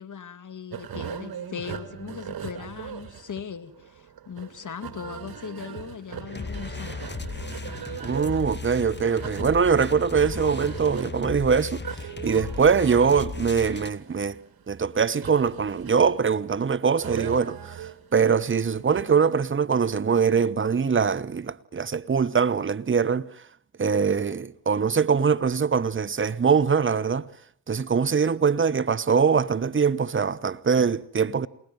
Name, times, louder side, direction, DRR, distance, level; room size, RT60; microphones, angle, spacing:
voice 1, 0.0-7.2, left 7 dB, 50° left, 2.1 m, -39 dB
sound 1, 0.7-19.4, right 8 dB, 60° right, 2.4 m, -39 dB
sound 2, 6.3-13.9, left 4 dB, 25° left, 2.2 m, -36 dB
voice 2, 8.0-11.8 12.2-14.4 14.7-23.3 23.8-27.3 27.7-31.5, right 6 dB, 30° right, 1.0 m, -23 dB
28.0 x 19.5 x 9.2 m
supercardioid pair, 45°, 40 cm